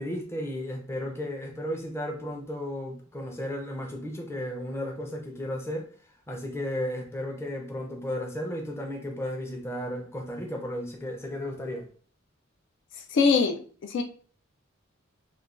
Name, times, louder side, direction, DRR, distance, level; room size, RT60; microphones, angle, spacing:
voice 1, 0.0-5.9 6.3-11.9, left 1 dB, 15° left, 0.5 m, -34 dB
voice 2, 13.1-14.0, left 5 dB, 65° left, 0.3 m, -23 dB
3.0 x 2.2 x 2.5 m
head